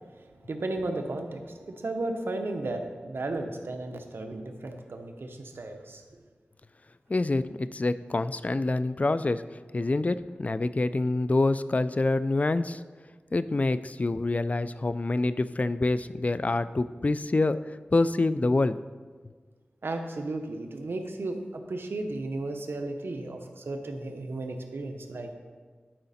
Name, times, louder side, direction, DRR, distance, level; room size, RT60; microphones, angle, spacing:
voice 1, 0.1-6.0 19.8-25.3, right 2 dB, 75° right, 5 dB, 0.9 m, -34 dB
voice 2, 7.1-9.4 9.7-12.8 13.3-18.8, left 2 dB, 40° left, 14 dB, 0.4 m, -26 dB
12.0 x 4.9 x 4.2 m, 1.5 s
cardioid pair, 45°, 4 cm